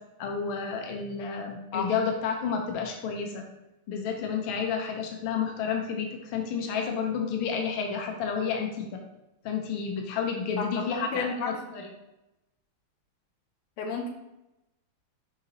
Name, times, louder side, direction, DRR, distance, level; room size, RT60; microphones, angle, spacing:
voice 1, 0.2-3.4 3.9-9.0 9.4-11.9, left 6 dB, 70° left, 2 dB, 1.5 m, -30 dB
voice 2, 10.6-11.5 13.8-14.1, left 4 dB, 90° left, 2 dB, 1.9 m, -32 dB
6.6 x 5.1 x 3.0 m, 0.94 s
omnidirectional pair, 2.3 m